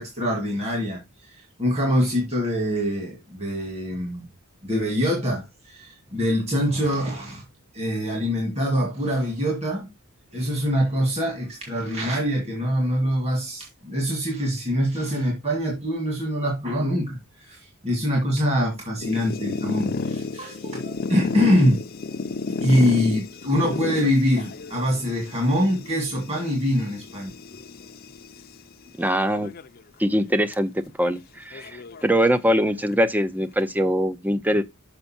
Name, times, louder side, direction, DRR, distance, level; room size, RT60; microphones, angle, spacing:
voice 1, 0.0-4.3 4.6-7.4 7.7-9.9 10.3-21.8 22.5-27.3, equal, 30° right, 2.1 m, -24 dB
sound 1, 19.0-28.5 29.2-29.8 30.1-30.2 30.5-30.6 31.5-32.7, left 3 dB, 45° left, 0.6 m, -32 dB
voice 2, 29.0-29.5 30.0-30.7 31.0-34.6, equal, 10° right, 0.5 m, -22 dB
6.7 x 5.5 x 4.3 m
head